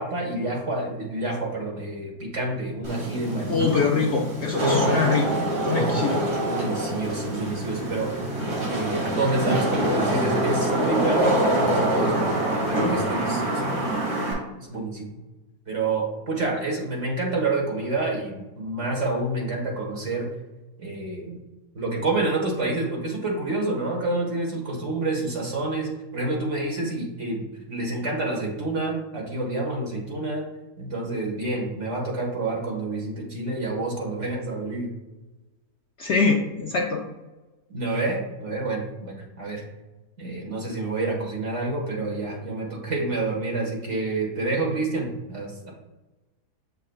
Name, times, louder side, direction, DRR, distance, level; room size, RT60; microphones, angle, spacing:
voice 1, 0.0-3.7 4.5-4.9 5.7-6.0 6.4-8.1 8.7-12.4 12.7-13.8 14.6-15.2 15.7-20.3 20.8-21.4 21.7-30.4 30.8-34.9 37.7-39.6 40.2-45.7, right 2 dB, 50° right, -1 dB, 1.8 m, -28 dB
Wind / Rain, 2.8-14.3, right 1 dB, 85° right, 2.8 m, -25 dB
voice 2, 3.5-5.3 5.6-6.2 36.0-37.0, left 4 dB, 60° left, 0 dB, 0.8 m, -23 dB
7.6 x 5.6 x 2.4 m, 1.1 s
omnidirectional pair, 1.7 m